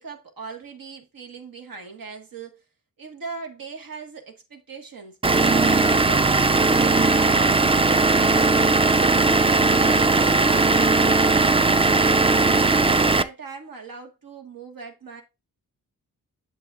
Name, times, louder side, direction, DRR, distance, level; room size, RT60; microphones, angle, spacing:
voice 1, 0.0-2.6 3.0-5.2 5.7-8.6 9.4-10.7 10.9-15.2, right 4 dB, 65° right, 1.7 m, -39 dB
Vehicle / Engine, 5.2-13.2, right 3 dB, 15° right, 0.4 m, -18 dB
7.7 x 6.9 x 2.4 m
cardioid pair, 65°, 36 cm